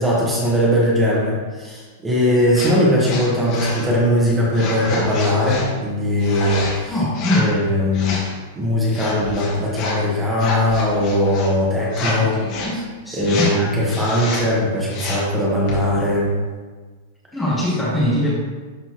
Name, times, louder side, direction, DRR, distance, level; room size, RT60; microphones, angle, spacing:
voice 1, 0.0-6.9 7.3-8.2 8.5-12.3 13.1-16.3, left 1 dB, 10° right, -5 dB, 1.4 m, -19 dB
sound 1, 2.5-2.7 3.0-3.8 4.5-5.6 6.2-6.7 7.1-7.5 7.9-8.3 8.9-10.0 10.3-11.5 11.9-12.2 12.4-12.7 13.2-13.5 13.9-14.4 14.9-15.3 15.7-15.8, left 3 dB, 35° left, 2.0 m, -28 dB
voice 2, 6.9-7.5 12.2-12.8 13.0-13.6 17.3-18.3, left 1 dB, 5° left, -8 dB, 1.3 m, -22 dB
11.5 x 4.0 x 3.0 m, 1.4 s
supercardioid pair, 165°, 0 cm